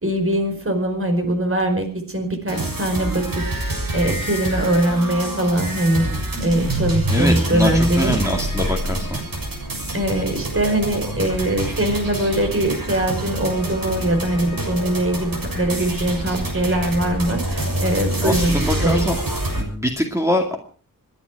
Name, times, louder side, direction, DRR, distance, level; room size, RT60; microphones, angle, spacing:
voice 1, 0.0-6.0 6.4-8.2 8.5-8.7 9.9-19.1 19.5-19.6, right 1 dB, 40° right, 6 dB, 4.9 m, -22 dB
sound 1, 2.5-19.6, right 1 dB, 75° right, 7.1 m, -26 dB
voice 2, 7.1-9.1 18.2-19.2 19.5-20.6, left 1 dB, 10° right, 2 dB, 2.3 m, -23 dB
28.0 x 10.5 x 4.8 m, 0.40 s
wide cardioid pair, 95°, 35 cm